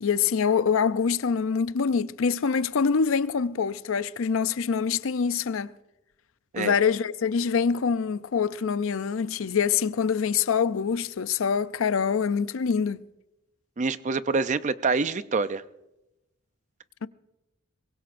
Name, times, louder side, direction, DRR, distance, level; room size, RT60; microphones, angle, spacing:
voice 1, 0.0-5.7 6.6-13.0, left 6 dB, 65° left, 0.5 m, -25 dB
voice 2, 13.8-15.6, right 4 dB, 35° right, 0.5 m, -26 dB
23.0 x 21.5 x 2.6 m
head